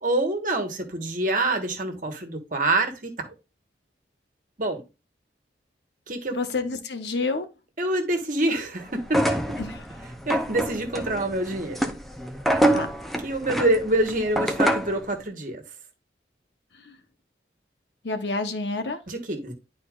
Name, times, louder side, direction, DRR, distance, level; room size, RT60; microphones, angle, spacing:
voice 1, 0.0-3.3 4.6-4.8 6.1-6.4 7.8-9.6 10.3-11.8 13.2-15.6 19.1-19.5, right 2 dB, 50° right, 1.4 m, -26 dB
voice 2, 6.3-7.5 9.6-9.8 12.7-12.9 16.9-17.0 18.0-19.0, left 3 dB, 80° left, 1.0 m, -28 dB
sound 1, 9.0-15.0, right 1 dB, ahead, 0.6 m, -26 dB
11.0 x 4.2 x 2.5 m
head